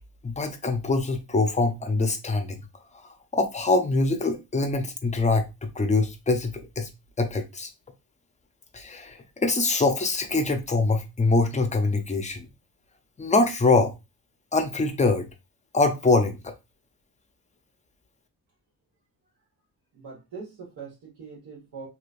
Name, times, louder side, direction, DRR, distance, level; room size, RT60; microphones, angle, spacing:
voice 1, 0.2-2.6 3.3-6.9 7.2-7.7 8.7-12.5 13.2-13.9 14.5-15.3 15.7-16.5, left 3 dB, 20° left, 0.5 m, -24 dB
voice 2, 19.9-21.9, right 5 dB, 75° right, 1.5 m, -42 dB
3.1 x 2.9 x 2.4 m
wide cardioid pair, 120°, 39 cm